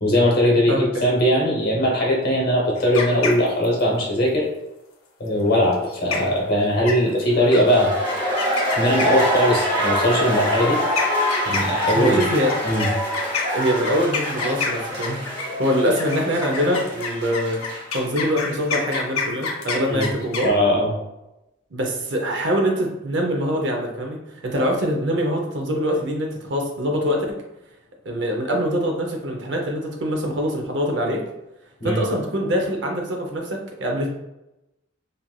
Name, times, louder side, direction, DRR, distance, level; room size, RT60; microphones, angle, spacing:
voice 1, 0.0-4.5 5.2-7.9 8.8-10.8 11.5-12.2 12.6-12.9 19.9-20.1 20.4-20.9 31.8-32.0, equal, 50° left, -2 dB, 0.8 m, -20 dB
voice 2, 0.7-1.1 11.9-12.5 13.5-17.6 17.9-20.5 21.7-27.4 28.0-31.2 31.8-34.1, equal, 60° right, 1 dB, 0.6 m, -24 dB
sound 1, 2.8-3.8 5.7-5.8 6.1-6.4 6.9-7.2 7.5-7.6 8.1-9.5 10.4-15.6 16.0-20.5, left 5 dB, 90° left, 0.6 m, -28 dB
sound 2, 7.5-18.3 18.6-18.7, equal, 35° right, 1.4 m, -25 dB
3.1 x 2.5 x 2.2 m, 0.93 s
head